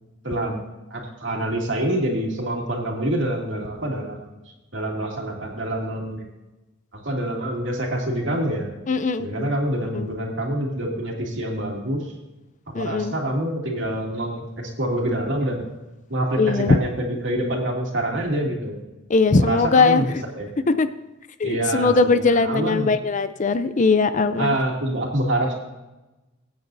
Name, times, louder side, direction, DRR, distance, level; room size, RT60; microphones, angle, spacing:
voice 1, 0.2-0.6 0.9-4.2 4.7-6.3 6.9-8.7 9.2-12.1 12.7-15.7 16.1-18.8 19.4-20.1 20.4-20.5 21.4-22.9 24.4-25.5, right 1 dB, 65° right, -1 dB, 2.5 m, -26 dB
voice 2, 8.9-9.5 9.9-10.1 12.7-13.1 16.4-16.8 19.1-20.1 20.7-20.9 21.4-24.5, left 4 dB, 40° left, 11 dB, 0.5 m, -20 dB
22.0 x 8.8 x 2.7 m, 1.1 s
head